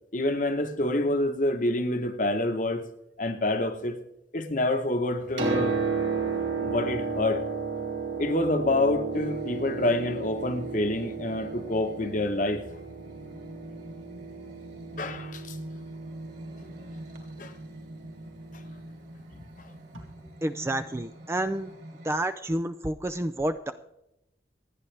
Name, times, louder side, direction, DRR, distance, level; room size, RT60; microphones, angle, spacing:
voice 1, 0.1-2.8 3.2-3.9 4.3-5.8 6.6-7.4 8.2-12.6 15.0-15.6 17.4-17.5 19.3-19.4, left 1 dB, 45° left, 7 dB, 1.1 m, -27 dB
Piano, 5.1-18.9 19.9-20.0, right 4 dB, 85° right, 3.8 m, -34 dB
sound 1, 9.1-22.1, right 1 dB, 55° right, 3.2 m, -45 dB
voice 2, 20.4-21.7 22.0-23.7, right 1 dB, 15° right, 9 dB, 0.4 m, -29 dB
27.5 x 9.7 x 3.4 m, 0.88 s
head